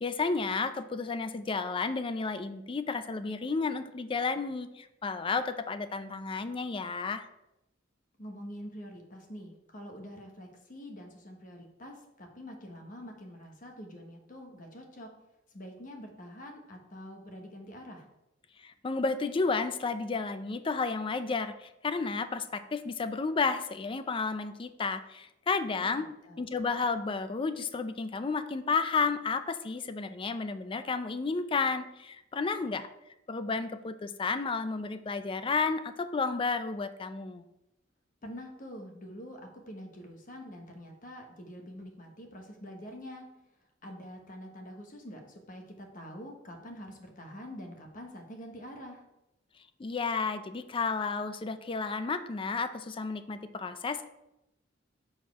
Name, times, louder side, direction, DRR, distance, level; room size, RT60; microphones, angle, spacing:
voice 1, 0.0-7.2 18.6-26.1 26.4-32.9 33.3-37.5 49.8-54.1, left 4 dB, 30° left, 11 dB, 0.4 m, -32 dB
voice 2, 8.2-15.1 15.5-18.1 25.8-26.4 38.2-43.2 43.8-49.0, equal, 45° left, 3 dB, 1.1 m, -46 dB
7.1 x 4.3 x 4.6 m, 0.89 s
head